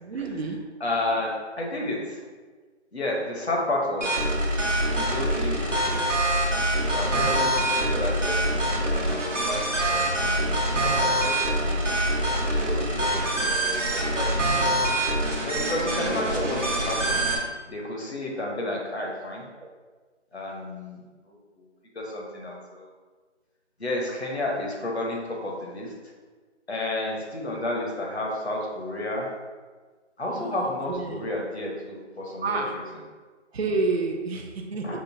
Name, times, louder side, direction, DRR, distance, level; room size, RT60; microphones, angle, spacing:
voice 1, 0.0-0.6 19.6-19.7 30.3-31.3 32.4-32.7 33.5-35.0, right 3 dB, 60° right, 2 dB, 0.5 m, -29 dB
voice 2, 0.8-2.2 2.9-4.4 4.9-6.1 6.9-11.8 12.5-14.9 15.4-17.2 17.7-19.5 20.3-21.7 21.9-22.9 23.8-25.9 26.7-29.3 30.2-32.8 34.8-35.0, left 1 dB, 60° left, -2 dB, 0.9 m, -31 dB
sound 1, 4.0-17.4, right 1 dB, 90° right, 0.9 m, -25 dB
5.2 x 2.4 x 2.6 m, 1.4 s
figure-of-eight pair, 175°, 36 cm